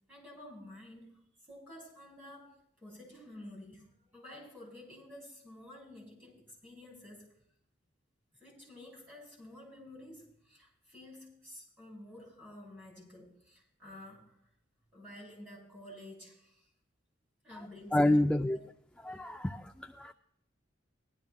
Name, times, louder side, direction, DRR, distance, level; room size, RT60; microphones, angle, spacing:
voice 1, 0.1-1.1 1.5-7.3 8.4-14.4 14.9-16.7 17.4-18.6, left 1 dB, 10° right, -2 dB, 5.8 m, -51 dB
voice 2, 17.9-18.6 19.0-20.1, left 1 dB, 5° left, 5 dB, 0.3 m, -28 dB
20.0 x 12.0 x 2.3 m, 0.72 s
head